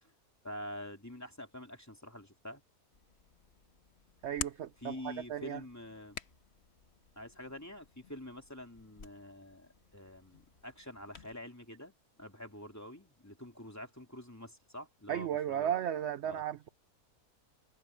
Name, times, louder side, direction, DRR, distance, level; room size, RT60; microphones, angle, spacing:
voice 1, 0.4-2.6 4.8-6.2 7.2-15.7 16.2-16.4, left 1 dB, 10° left, 2.9 m, -47 dB
Hands, 2.9-11.3, left 5 dB, 45° left, 1.6 m, -50 dB
voice 2, 4.2-5.6 15.1-16.7, right 10 dB, 60° right, 0.8 m, -35 dB
omnidirectional pair, 1.6 m